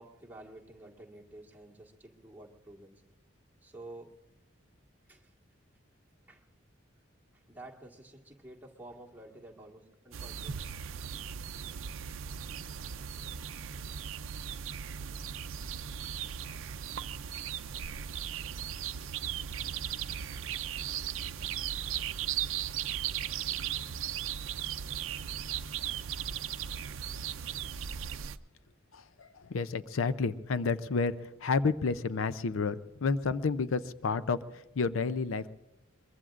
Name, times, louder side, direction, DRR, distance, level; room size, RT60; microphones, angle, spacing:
voice 1, 0.0-3.0 3.6-4.1 5.1-5.3 6.3-6.4 7.3-10.8, right 2 dB, 10° right, -3 dB, 1.6 m, -51 dB
sound 1, 10.1-28.4, right 9 dB, 80° right, 0.5 m, -37 dB
voice 2, 28.9-35.5, left 4 dB, 85° left, 14 dB, 0.5 m, -31 dB
22.5 x 22.5 x 2.5 m, 0.92 s
head